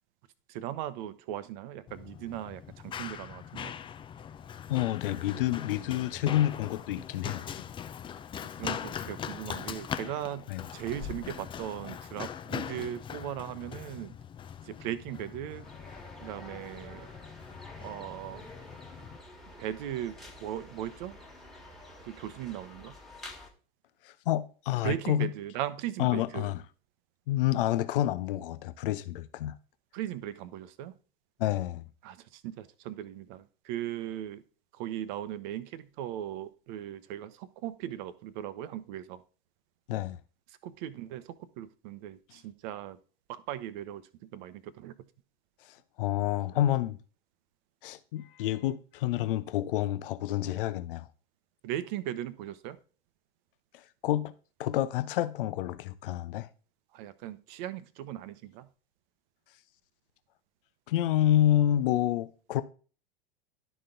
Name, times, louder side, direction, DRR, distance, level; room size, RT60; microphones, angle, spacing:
voice 1, 0.5-3.7 8.6-14.2 14.6-15.7 16.2-17.1 17.8-18.5 19.6-21.2 22.1-23.0 24.8-26.5 29.9-30.9 32.0-34.4 34.7-39.2 40.5-43.0 43.3-44.9 51.6-52.8 56.9-58.7, right 11 dB, 50° right, 0.8 m, -38 dB
Run, 1.9-19.2, left 8 dB, 15° left, 0.4 m, -41 dB
voice 2, 4.7-7.6 10.5-10.6 24.0-25.3 26.0-26.6 27.3-29.6 31.4-31.9 39.9-40.2 45.7-47.0 47.8-51.1 53.7-54.3 54.6-56.5 60.9-62.6, left 13 dB, 65° left, 0.7 m, -29 dB
sound 1, 15.6-23.5, left 1 dB, ahead, 1.7 m, -49 dB
11.5 x 4.1 x 3.8 m
hypercardioid pair, 95°, 30 cm